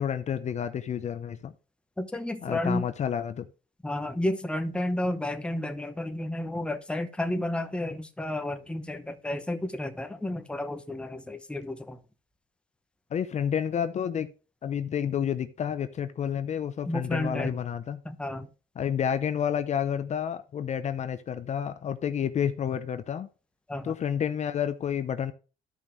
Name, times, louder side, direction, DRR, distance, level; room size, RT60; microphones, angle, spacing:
voice 1, 0.0-1.5 2.4-3.5 13.1-14.3 14.6-18.0 18.8-23.3 23.8-25.3, left 8 dB, 45° left, 0.7 m, -30 dB
voice 2, 2.0-2.9 3.8-12.0 16.9-17.5 18.0-18.5 23.7-24.0, left 1 dB, 5° left, 0.9 m, -31 dB
13.0 x 5.5 x 3.2 m
cardioid pair, 110°, 17 cm